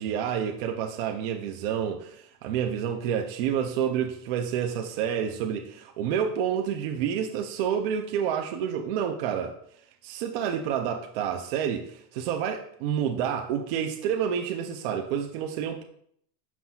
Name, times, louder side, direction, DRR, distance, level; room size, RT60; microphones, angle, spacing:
voice 1, 0.0-9.5 10.0-15.8, right 8 dB, 40° right, 4 dB, 0.4 m, -29 dB
9.4 x 5.9 x 2.3 m, 0.66 s
supercardioid pair, 175°, 49 cm